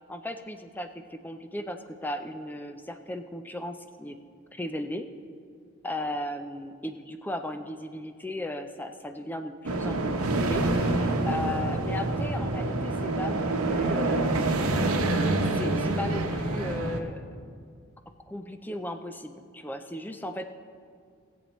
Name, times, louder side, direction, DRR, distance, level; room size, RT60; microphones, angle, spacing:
voice 1, 0.1-4.2 4.5-5.1 5.8-14.5 15.6-17.2 18.3-20.5, left 1 dB, 10° left, 7 dB, 0.4 m, -36 dB
sound 1, 9.7-17.0, right 2 dB, 90° right, 0.9 m, -27 dB
18.5 x 7.9 x 3.1 m, 2.2 s
head